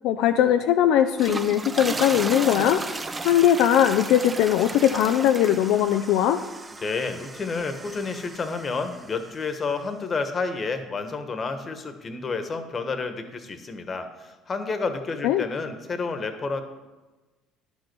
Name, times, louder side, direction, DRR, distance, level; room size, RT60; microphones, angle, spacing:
voice 1, 0.0-2.8 3.2-6.4 15.2-15.5, left 10 dB, 70° left, 7 dB, 0.4 m, -20 dB
sound 1, 1.0-9.3, right 3 dB, 25° right, 0.7 m, -35 dB
voice 2, 6.8-16.6, left 4 dB, 35° left, 8 dB, 1.3 m, -30 dB
11.0 x 5.3 x 6.1 m, 1.2 s
hypercardioid pair, 70°, 0 cm